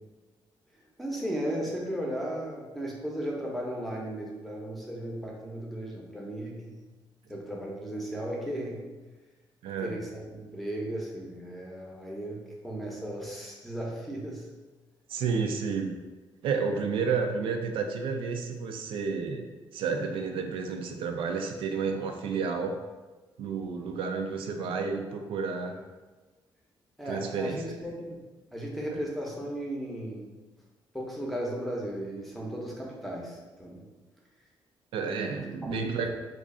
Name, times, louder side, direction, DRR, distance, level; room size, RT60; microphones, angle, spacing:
voice 1, 1.0-6.8 7.3-8.8 9.8-14.5 23.6-24.0 25.0-25.2 25.5-25.8 27.0-28.2 28.5-30.4 30.9-33.8 35.0-35.3 35.6-36.1, right 1 dB, ahead, -3 dB, 0.7 m, -36 dB
voice 2, 9.6-10.0 15.1-16.0 16.4-19.5 19.7-22.8 23.4-25.8 27.1-27.7 28.9-29.0 34.9-36.1, right 5 dB, 80° right, 4 dB, 0.4 m, -31 dB
3.1 x 2.4 x 3.7 m, 1.2 s
cardioid pair, 130°, 9 cm